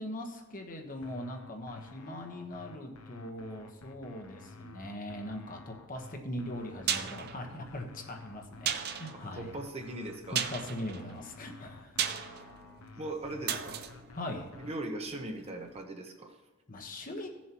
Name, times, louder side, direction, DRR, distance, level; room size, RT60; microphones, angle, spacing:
voice 1, 0.0-9.5 10.3-12.0 14.1-14.5 16.7-17.3, left 1 dB, 40° left, 3 dB, 1.2 m, -40 dB
sound 1, 1.0-14.7, left 4 dB, 90° left, 0.9 m, -52 dB
sound 2, 6.5-15.3 15.6-15.7, right 8 dB, 50° right, 0.6 m, -37 dB
voice 2, 9.3-10.4 13.0-13.8 14.6-16.4, right 1 dB, 30° right, 3 dB, 1.0 m, -39 dB
16.0 x 7.3 x 3.0 m, 1.2 s
head